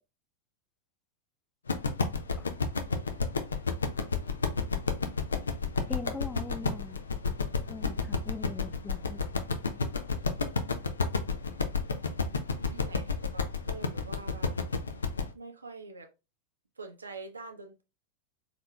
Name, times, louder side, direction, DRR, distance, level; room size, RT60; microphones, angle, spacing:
sound 1, 1.7-15.3, left 4 dB, 75° left, 0.6 m, -30 dB
voice 1, 2.9-3.3 12.6-14.6 15.3-16.1 16.8-17.8, right 3 dB, 75° right, 0.8 m, -45 dB
voice 2, 5.8-7.0 7.7-9.2, left 4 dB, 15° left, 0.3 m, -41 dB
4.2 x 4.1 x 2.3 m
figure-of-eight pair, 90°, 0 cm